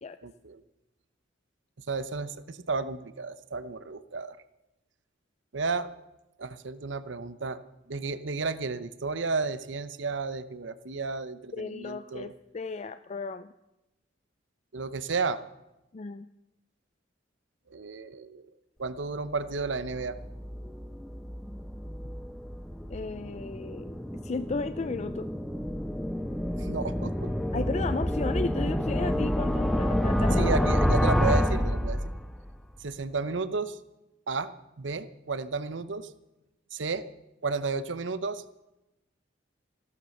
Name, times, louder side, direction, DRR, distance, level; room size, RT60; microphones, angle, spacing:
voice 1, 0.2-0.6 1.9-4.4 5.5-5.9 6.4-7.6 7.9-12.3 14.7-15.4 17.7-18.4 18.8-20.2 26.6-27.3 30.4-32.0 32.8-33.8 34.3-36.1 36.7-37.0 37.4-38.4, right 4 dB, 90° right, 14 dB, 0.8 m, -32 dB
voice 2, 11.5-13.5 15.9-16.3 22.9-23.9 24.2-25.3 27.5-30.6, left 3 dB, 35° left, 12 dB, 0.4 m, -34 dB
sound 1, 19.5-32.5, equal, ahead, 1.1 m, -29 dB
15.5 x 12.0 x 6.5 m, 0.94 s
head